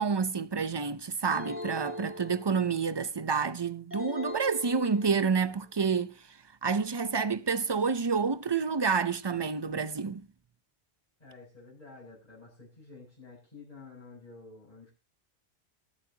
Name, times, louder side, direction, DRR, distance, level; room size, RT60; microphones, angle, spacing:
voice 1, 0.0-6.1 6.6-10.3, right 5 dB, 30° right, 0.5 m, -29 dB
sound 1, 1.3-2.9 3.9-5.5, left 2 dB, 10° right, 3.5 m, -41 dB
voice 2, 11.2-14.9, left 3 dB, 40° left, 6.6 m, -50 dB
22.0 x 9.0 x 2.8 m
omnidirectional pair, 1.1 m